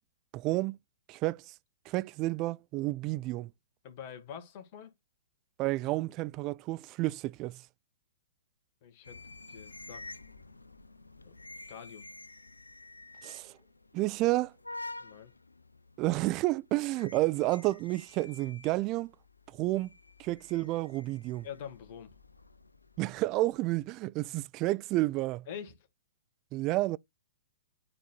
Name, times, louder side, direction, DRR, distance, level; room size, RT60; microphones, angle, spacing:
voice 1, 0.3-0.8 1.1-1.5 1.9-3.5 5.6-7.6 13.2-13.5 13.9-14.5 16.0-19.1 19.5-19.9 20.2-21.5 23.0-25.5 26.5-27.0, right 19 dB, 35° right, 0.3 m, -30 dB
voice 2, 3.8-4.9 8.8-9.2 9.5-10.0 11.2-11.3 11.7-12.1 15.0-15.3 21.4-22.1 25.5-25.8, left 8 dB, 45° left, 1.8 m, -45 dB
sound 1, 9.0-23.9, left 2 dB, 90° left, 0.5 m, -50 dB
10.5 x 4.3 x 2.3 m
figure-of-eight pair, 115°, 0 cm